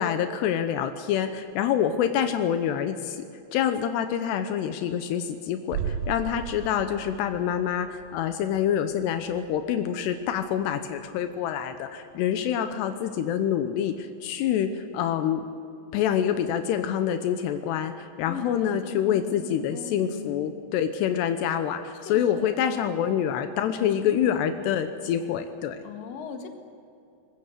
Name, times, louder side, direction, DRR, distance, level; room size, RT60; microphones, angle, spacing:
voice 1, 0.0-3.2 3.5-15.5 15.9-25.8, left 9 dB, 85° left, 8 dB, 3.0 m, -26 dB
sound 1, 5.7-11.4 11.7-11.8, right 8 dB, 75° right, 2.5 m, -37 dB
voice 2, 18.3-20.4 21.9-23.0 23.8-24.6 25.8-26.5, left 6 dB, 60° left, 5 dB, 3.2 m, -39 dB
24.0 x 20.5 x 6.6 m, 2.5 s
omnidirectional pair, 4.7 m